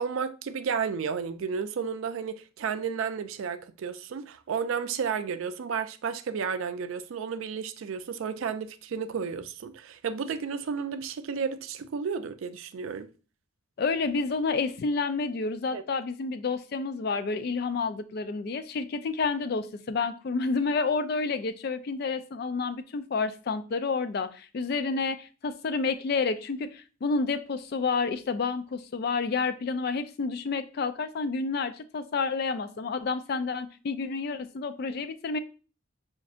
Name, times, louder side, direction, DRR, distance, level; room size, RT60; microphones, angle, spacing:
voice 1, 0.0-13.1 15.7-15.8, right 6 dB, 80° right, 0.4 m, -32 dB
voice 2, 13.8-35.4, left 4 dB, 50° left, 0.3 m, -29 dB
6.0 x 2.5 x 2.4 m
head